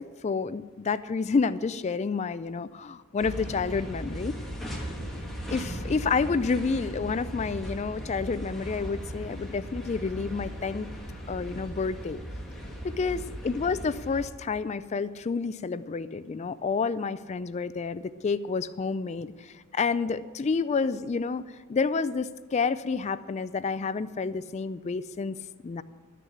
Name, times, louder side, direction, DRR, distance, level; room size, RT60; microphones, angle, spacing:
voice 1, 0.0-4.4 4.7-4.9 5.1-5.2 5.5-10.9 11.3-12.2 12.8-25.4 25.6-25.8, left 4 dB, 30° left, 15 dB, 0.3 m, -29 dB
sound 1, 3.2-14.2, equal, ahead, 1.7 m, -38 dB
13.0 x 6.7 x 8.6 m, 1.4 s
head